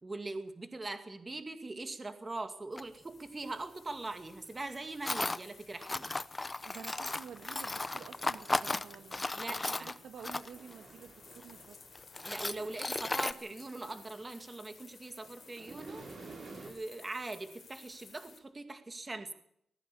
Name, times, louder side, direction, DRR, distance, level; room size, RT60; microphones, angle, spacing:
voice 1, 0.0-6.1 9.3-9.9 12.2-16.1 16.5-19.3, right 2 dB, 20° right, 7 dB, 2.2 m, -42 dB
sound 1, 2.7-18.4, left 5 dB, 40° left, 4.1 m, -57 dB
Tools, 2.8-2.9 5.0-5.4 5.8-10.7 11.4-11.5 12.0-13.3, left 2 dB, 15° left, 0.8 m, -35 dB
voice 2, 6.6-11.8, right 7 dB, 80° right, 8 dB, 2.2 m, -50 dB
sound 2, 7.3-14.8 15.1-16.7, right 4 dB, 45° right, 6.9 m, -54 dB
20.0 x 15.0 x 8.5 m, 0.69 s
wide cardioid pair, 160°, 0 cm